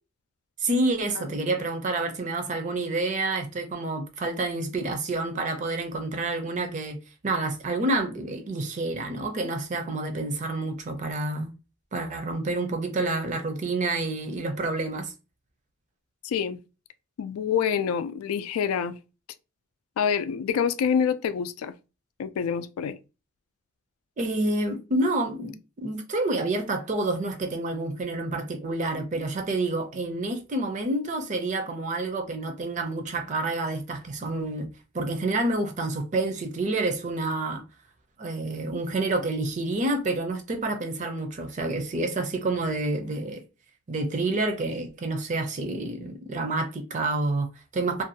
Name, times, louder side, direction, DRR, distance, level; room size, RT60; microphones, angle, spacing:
voice 1, 0.6-7.0 7.2-11.5 11.9-15.1 24.2-34.7 34.9-37.6 38.2-43.4 43.9-48.0, right 2 dB, 35° right, 0.5 m, -28 dB
voice 2, 16.2-16.6 17.2-19.0 20.0-21.7 22.2-23.0, left 7 dB, 90° left, 0.3 m, -26 dB
2.5 x 2.2 x 2.7 m
head